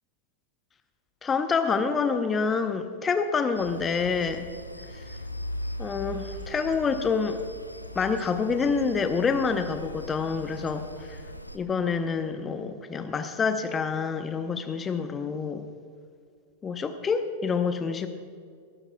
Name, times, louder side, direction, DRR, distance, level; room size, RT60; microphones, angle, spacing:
voice 1, 1.2-4.5 5.8-7.4 7.9-11.2 11.5-15.7 16.6-18.1, left 5 dB, 20° left, 9 dB, 0.8 m, -27 dB
sound 1, 3.5-11.6, left 1 dB, 90° left, 0.6 m, -39 dB
19.5 x 14.5 x 2.3 m, 2.1 s
figure-of-eight pair, 90°, 0 cm